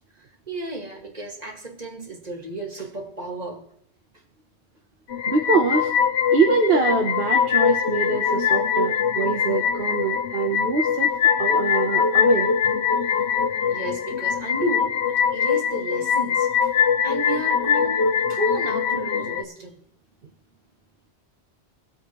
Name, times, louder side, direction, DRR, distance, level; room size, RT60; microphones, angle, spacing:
voice 1, 0.5-3.7 13.7-16.7 17.0-18.0 18.3-19.8, right 2 dB, 40° right, 2.2 m, -32 dB
sound 1, 5.1-19.4, left 7 dB, 85° left, 1.1 m, -22 dB
voice 2, 5.3-5.9 6.3-11.1 11.4-12.5, right 4 dB, 60° right, 1.3 m, -24 dB
22.5 x 8.4 x 3.0 m
omnidirectional pair, 1.1 m